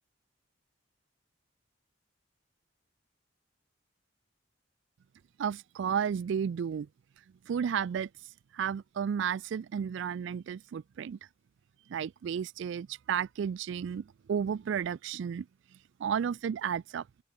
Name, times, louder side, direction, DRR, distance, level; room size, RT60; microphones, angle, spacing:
voice 1, 5.4-6.9 7.5-8.1 8.5-11.2 11.9-15.5 16.0-17.1, right 7 dB, 65° right, 0.3 m, -32 dB
open air
head